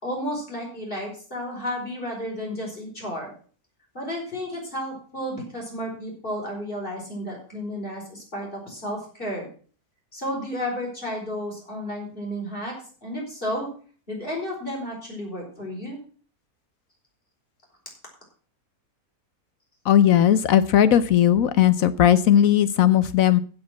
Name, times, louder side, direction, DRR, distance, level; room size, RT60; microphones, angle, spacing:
voice 1, 0.0-3.3 3.9-9.5 10.1-12.7 13.0-13.7 14.1-16.0, equal, 35° left, -1 dB, 4.9 m, -32 dB
voice 2, 19.9-23.4, left 10 dB, 70° left, 14 dB, 1.0 m, -17 dB
15.5 x 5.2 x 6.0 m, 0.41 s
omnidirectional pair, 1.6 m